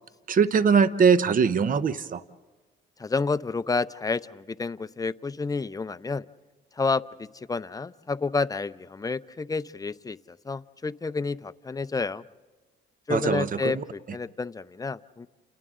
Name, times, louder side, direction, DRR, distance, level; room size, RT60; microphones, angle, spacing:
voice 1, 0.3-2.2 13.1-13.8, right 6 dB, 45° right, 13 dB, 0.9 m, -21 dB
voice 2, 3.0-6.2 6.8-12.2 13.1-15.3, left 4 dB, 20° left, 12 dB, 0.6 m, -30 dB
29.5 x 29.0 x 3.8 m, 1.3 s
cardioid pair, 90°, 20 cm